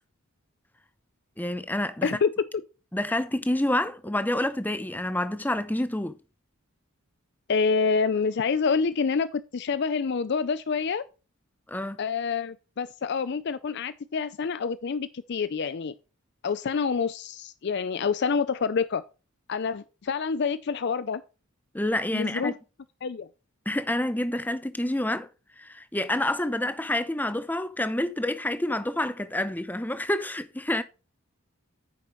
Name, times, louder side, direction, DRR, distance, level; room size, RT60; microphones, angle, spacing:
voice 1, 1.4-2.2 2.9-6.2 11.7-12.0 21.7-22.5 23.7-25.3 25.6-30.8, left 1 dB, 10° left, 0.6 m, -28 dB
voice 2, 7.5-11.0 12.0-15.9 16.4-19.0 19.5-21.2 22.1-22.5 23.0-23.3, left 5 dB, 50° left, 0.4 m, -27 dB
9.5 x 7.0 x 3.1 m
head